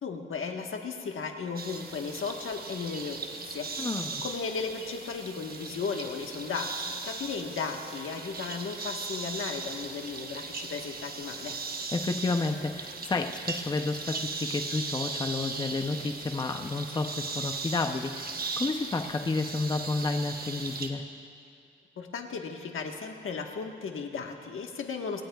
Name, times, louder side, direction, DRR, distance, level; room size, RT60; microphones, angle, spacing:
voice 1, 0.0-11.6 22.0-25.2, left 5 dB, 75° left, 3 dB, 1.4 m, -35 dB
sound 1, 1.6-20.9, right 4 dB, 45° right, 1.1 m, -38 dB
voice 2, 3.8-4.2 11.9-21.0, left 3 dB, 20° left, 6 dB, 0.6 m, -31 dB
26.5 x 18.0 x 2.3 m, 2.5 s
wide cardioid pair, 160°, 21 cm